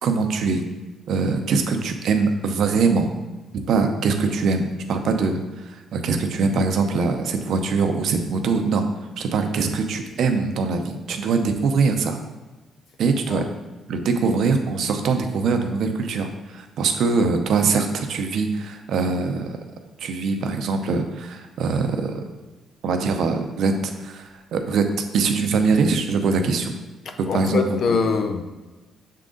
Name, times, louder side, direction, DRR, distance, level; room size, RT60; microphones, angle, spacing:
voice 1, 0.0-0.6 1.1-3.1 3.7-8.8 9.2-12.2 13.0-13.4 13.9-19.6 20.0-22.2 22.8-24.9 25.1-26.7 27.2-27.8, right 4 dB, 70° right, 6 dB, 0.7 m, -22 dB
voice 2, 27.3-28.4, left 4 dB, 60° left, 6 dB, 0.6 m, -23 dB
6.6 x 3.7 x 3.8 m, 1.2 s
cardioid pair, 90°, 0 cm